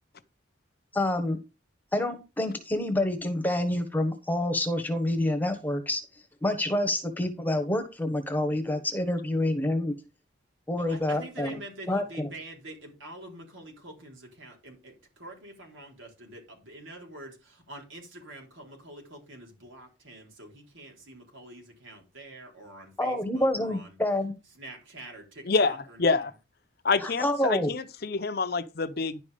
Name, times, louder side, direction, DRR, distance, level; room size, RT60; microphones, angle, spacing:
voice 1, 0.9-1.4 1.9-6.0 6.4-9.9 10.7-11.6 11.9-12.3 23.0-24.3 27.0-27.7, left 1 dB, 10° left, 1.1 m, -27 dB
voice 2, 10.7-23.9 24.6-26.3, right 1 dB, 80° right, 3.9 m, -46 dB
voice 3, 25.5-26.3 26.8-29.2, left 4 dB, 50° left, 0.7 m, -27 dB
11.0 x 5.3 x 5.0 m
head